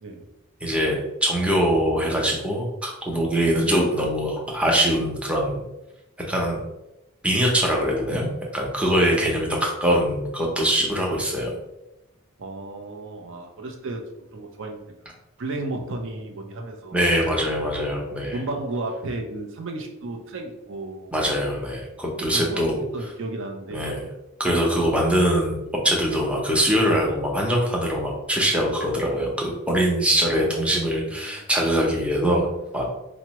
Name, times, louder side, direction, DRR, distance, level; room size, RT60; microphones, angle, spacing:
voice 1, 0.6-5.6 6.3-6.6 7.2-11.5 16.9-18.4 21.1-22.8 23.7-24.1 24.4-25.6 25.8-32.5 32.7-32.9, equal, 5° right, -2 dB, 0.6 m, -23 dB
voice 2, 9.0-9.4 12.4-14.0 14.3-14.8 15.4-17.0 18.3-21.1 22.3-23.9 30.4-31.4, right 2 dB, 65° right, 3 dB, 0.6 m, -33 dB
4.5 x 2.0 x 3.0 m, 0.92 s
head